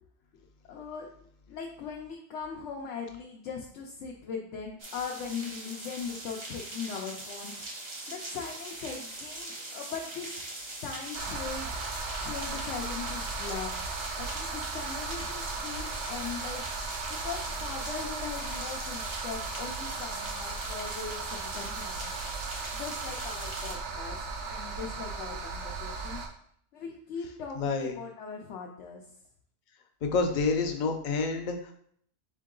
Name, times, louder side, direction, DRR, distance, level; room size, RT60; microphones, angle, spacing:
voice 1, 0.7-1.1 1.5-7.5 8.1-10.4 10.8-11.7 12.1-13.7 14.2-16.7 17.1-22.1 22.7-24.2 24.5-26.2 26.7-29.0, left 6 dB, 80° left, -1 dB, 0.9 m, -39 dB
sound 1, 4.8-23.8, right 2 dB, 30° right, 0.6 m, -41 dB
sound 2, 11.1-26.3, right 4 dB, 80° right, 1.0 m, -37 dB
voice 2, 27.6-28.0 30.0-31.7, left 4 dB, 50° left, 4 dB, 0.6 m, -28 dB
3.7 x 3.6 x 3.7 m, 0.63 s
omnidirectional pair, 1.2 m